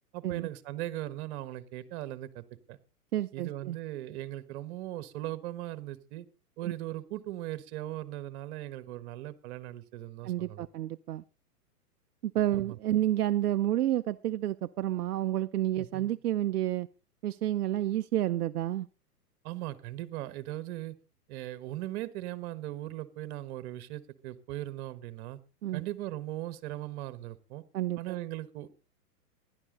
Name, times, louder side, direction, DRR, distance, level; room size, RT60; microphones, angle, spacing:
voice 1, 0.1-2.8 3.3-6.2 6.6-10.7 12.5-12.8 15.8-16.1 19.4-20.9 21.3-25.4 25.7-27.6 28.0-28.7, right 15 dB, 45° right, 1.4 m, -39 dB
voice 2, 3.1-3.8 10.2-11.2 12.2-16.9 17.2-18.9 25.6-25.8 27.7-28.1, right 13 dB, 75° right, 0.6 m, -30 dB
16.0 x 11.0 x 3.9 m
hypercardioid pair, 120°, 47 cm